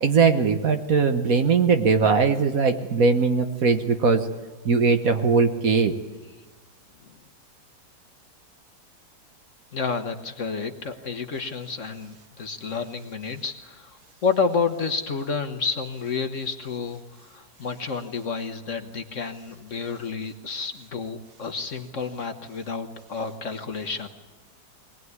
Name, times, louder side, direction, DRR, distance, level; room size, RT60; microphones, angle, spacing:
voice 1, 0.0-4.3 4.6-5.9, right 4 dB, 55° right, 7 dB, 1.5 m, -20 dB
voice 2, 9.7-24.1, left 5 dB, 50° left, 7 dB, 1.3 m, -30 dB
22.5 x 18.5 x 9.6 m, 1.2 s
omnidirectional pair, 1.9 m